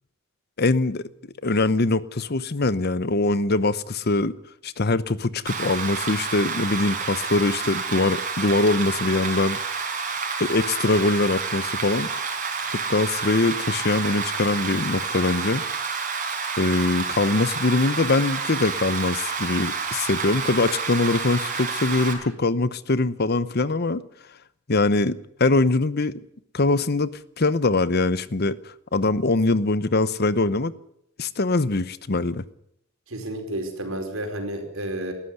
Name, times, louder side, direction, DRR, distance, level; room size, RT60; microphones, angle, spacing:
voice 1, 0.6-1.0 1.4-4.3 4.6-9.6 10.4-12.1 12.7-15.6 16.6-24.0 24.7-26.1 26.5-30.7 31.2-32.4, left 2 dB, 50° left, 16 dB, 0.9 m, -23 dB
Rain, 5.5-22.1, right 5 dB, 40° right, 4.5 m, -29 dB
voice 2, 33.1-35.1, right 1 dB, 75° right, 5 dB, 5.0 m, -31 dB
19.5 x 14.5 x 9.7 m, 0.74 s
head